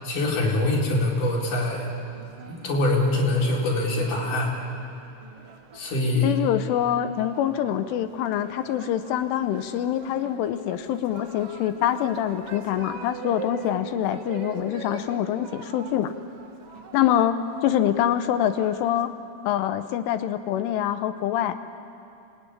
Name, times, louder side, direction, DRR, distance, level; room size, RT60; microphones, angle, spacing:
voice 1, 0.0-1.9 2.5-4.5 5.7-6.4, left 2 dB, 40° left, -2 dB, 5.2 m, -24 dB
sound 1, 1.1-19.1, right 4 dB, 75° right, 1.3 m, -43 dB
voice 2, 6.2-16.1 16.9-19.1 19.4-21.6, left 11 dB, 80° left, 10 dB, 3.2 m, -25 dB
26.5 x 20.5 x 9.9 m, 2.7 s
omnidirectional pair, 6.0 m